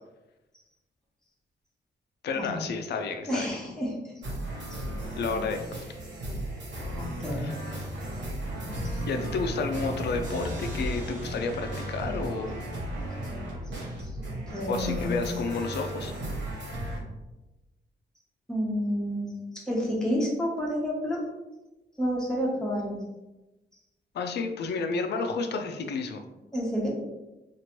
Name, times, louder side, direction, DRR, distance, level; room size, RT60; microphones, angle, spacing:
voice 1, 2.2-3.5 5.2-5.8 7.4-7.5 9.1-12.6 14.7-16.1 24.1-26.2, left 4 dB, 65° left, 5 dB, 0.4 m, -31 dB
voice 2, 3.3-4.1 4.7-4.8 6.9-7.5 8.8-9.0 14.0-14.1 14.5-15.2 18.5-21.2 22.0-23.0 26.5-26.9, equal, 5° left, -4 dB, 0.7 m, -30 dB
sound 1, 4.2-17.0, right 1 dB, 80° right, 1.0 m, -35 dB
3.0 x 2.5 x 2.9 m, 1.0 s
wide cardioid pair, 140°, 18 cm